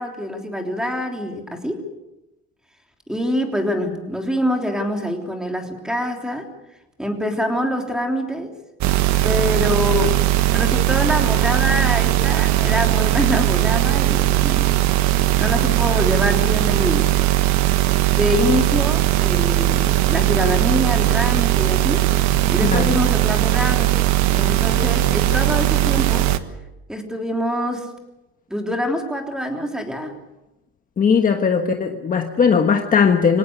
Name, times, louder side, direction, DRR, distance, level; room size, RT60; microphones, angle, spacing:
voice 1, 0.0-1.9 3.1-6.5 7.0-8.5 9.2-14.8 15.1-17.1 18.1-22.1 22.5-24.0 24.3-26.3 26.9-27.9 28.5-30.1 31.6-31.7, left 1 dB, ahead, 3 dB, 3.4 m, -25 dB
sound 1, 8.8-26.4, right 15 dB, 60° right, 1.4 m, -18 dB
voice 2, 22.6-22.9 31.0-33.4, left 6 dB, 25° left, 5 dB, 1.4 m, -18 dB
25.0 x 18.0 x 8.2 m, 0.97 s
cardioid pair, 145°, 31 cm